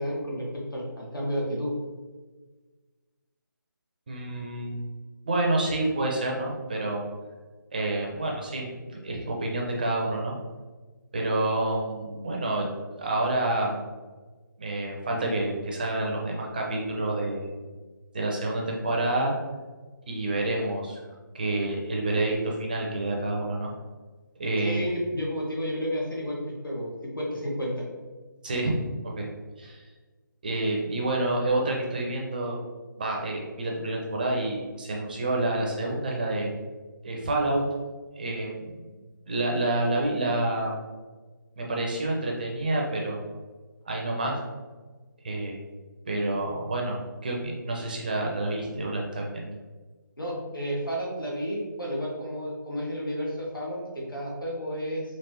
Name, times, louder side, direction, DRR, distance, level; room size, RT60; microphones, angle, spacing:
voice 1, 0.0-1.7 24.6-27.9 50.2-55.0, equal, 80° left, -3 dB, 1.4 m, -31 dB
voice 2, 4.1-4.8 5.2-7.0 7.7-8.7 9.0-10.3 11.1-12.7 13.0-13.9 14.6-17.5 18.1-19.3 20.1-21.0 21.3-23.7 24.4-24.8 28.4-28.8 29.0-29.3 29.6-29.8 30.4-32.6 33.0-36.5 37.0-37.6 38.2-38.7 39.3-40.8 41.6-43.3 43.9-44.4 45.2-45.5 46.1-49.6, right 2 dB, 25° right, -1 dB, 0.5 m, -28 dB
4.1 x 2.9 x 2.9 m, 1.3 s
figure-of-eight pair, 150°, 11 cm